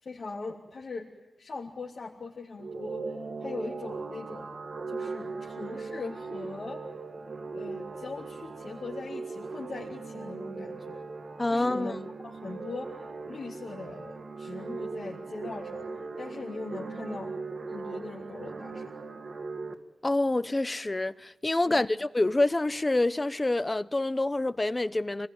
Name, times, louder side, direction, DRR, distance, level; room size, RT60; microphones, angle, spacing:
voice 1, 0.0-1.1 1.4-4.5 4.9-6.8 7.5-11.1 11.5-12.0 12.2-17.3 17.7-18.9 21.6-21.9, left 3 dB, 65° left, 3.2 m, -41 dB
sound 1, 2.6-19.7, right 4 dB, 60° right, 2.0 m, -39 dB
voice 2, 11.4-12.0 20.0-25.3, left 2 dB, 25° left, 0.8 m, -27 dB
27.5 x 20.0 x 9.8 m
wide cardioid pair, 95°, 0 cm